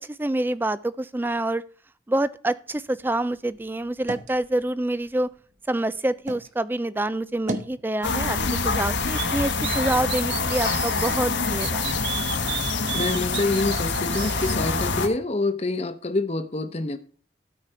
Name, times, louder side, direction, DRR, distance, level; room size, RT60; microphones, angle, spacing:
voice 1, 0.0-1.6 2.1-5.3 5.7-11.9, right 1 dB, 10° right, 0.4 m, -27 dB
sound 1, 2.7-6.5 7.0-7.8, right 1 dB, 40° right, 1.0 m, -39 dB
sound 2, 8.0-15.1, left 4 dB, 90° left, 1.4 m, -26 dB
sound 3, 9.2-11.2 11.6-14.6, right 12 dB, 65° right, 0.5 m, -34 dB
voice 2, 12.9-17.0, left 2 dB, 35° left, 0.9 m, -26 dB
12.5 x 4.9 x 5.6 m
head